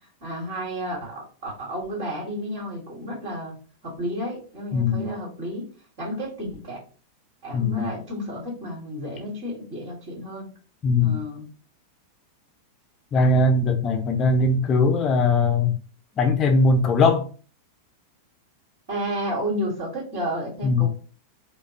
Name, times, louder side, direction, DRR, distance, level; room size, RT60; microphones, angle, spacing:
voice 1, 0.2-3.6 3.8-5.7 6.0-6.8 7.4-10.5 11.0-11.4 18.9-20.9, equal, 50° right, 2.3 m, -31 dB
voice 2, 4.7-5.1 7.5-7.9 10.8-11.2 13.1-15.7 16.2-17.3 20.6-20.9, left 3 dB, 30° left, 0.6 m, -20 dB
4.9 x 2.3 x 4.0 m
figure-of-eight pair, 90°, 0 cm